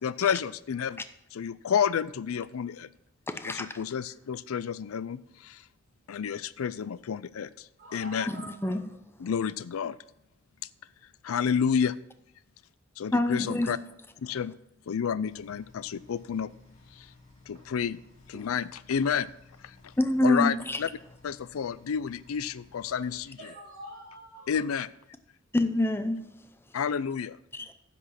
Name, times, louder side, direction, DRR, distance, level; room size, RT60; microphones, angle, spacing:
voice 1, 0.0-1.0 1.3-2.9 3.5-5.6 6.1-8.3 9.2-10.0 11.2-12.0 13.0-13.8 14.2-14.5 14.9-16.5 17.0-17.1 17.5-18.0 18.3-19.3 19.6-19.9 20.2-20.5 20.8-20.9 21.2-23.4 24.5-24.9 26.7-27.4, left 7 dB, 75° left, 0.4 m, -30 dB
voice 2, 3.3-3.8 8.3-8.9 13.1-13.8 18.3-18.5 20.0-20.8 25.5-26.5 27.5-27.7, left 1 dB, 10° left, 0.5 m, -27 dB
voice 3, 7.8-8.8 17.5-17.6 22.8-24.7, equal, 45° right, 4.1 m, -46 dB
sound 1, 15.2-23.2, left 3 dB, 35° left, 3.1 m, -56 dB
10.0 x 6.1 x 5.8 m
head